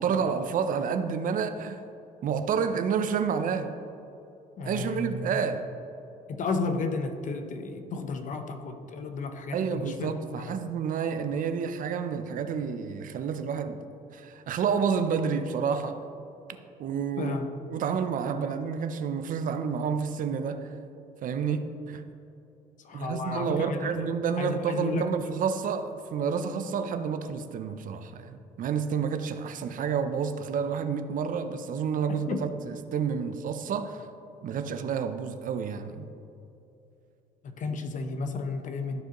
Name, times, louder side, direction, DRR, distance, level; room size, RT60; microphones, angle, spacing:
voice 1, 0.0-1.8 2.2-3.7 4.6-5.7 9.5-13.8 14.1-16.0 16.8-17.4 17.7-20.7 21.2-22.0 22.9-34.1 34.4-36.1, right 6 dB, 55° right, 9 dB, 0.5 m, -29 dB
voice 2, 4.6-5.4 6.3-10.6 17.2-17.5 22.8-24.0 24.4-25.1 32.3-32.4 37.4-39.0, left 3 dB, 50° left, 7 dB, 0.8 m, -33 dB
13.5 x 4.8 x 3.0 m, 2.8 s
cardioid pair, 110°, 17 cm